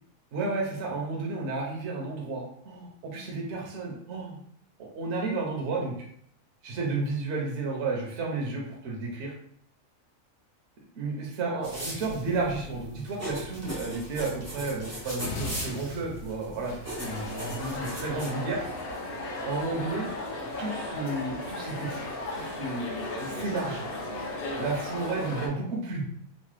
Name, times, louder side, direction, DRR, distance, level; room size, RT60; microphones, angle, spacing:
voice 1, 0.3-4.4 4.8-5.9 6.6-9.3 11.0-16.7 17.0-18.6 19.4-20.1 20.6-22.0 22.3-22.8 23.2-23.9 24.6-26.0, right 3 dB, 65° right, -1 dB, 0.9 m, -32 dB
sound 1, 11.6-18.3, equal, 20° right, 0.5 m, -39 dB
sound 2, 15.2-17.4, left 3 dB, 80° left, 1.0 m, -40 dB
sound 3, 17.0-25.5, left 2 dB, 55° left, 0.6 m, -35 dB
3.0 x 2.1 x 3.1 m, 0.65 s
omnidirectional pair, 1.4 m